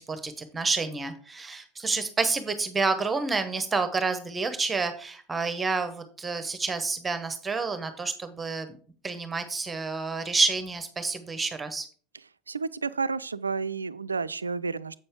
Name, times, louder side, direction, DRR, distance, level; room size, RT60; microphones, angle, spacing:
voice 1, 0.0-8.7 9.0-11.9, right 4 dB, 20° right, 1.1 m, -29 dB
voice 2, 12.5-15.0, right 4 dB, 85° right, 0.3 m, -31 dB
7.8 x 6.7 x 3.6 m
figure-of-eight pair, 80°, 0 cm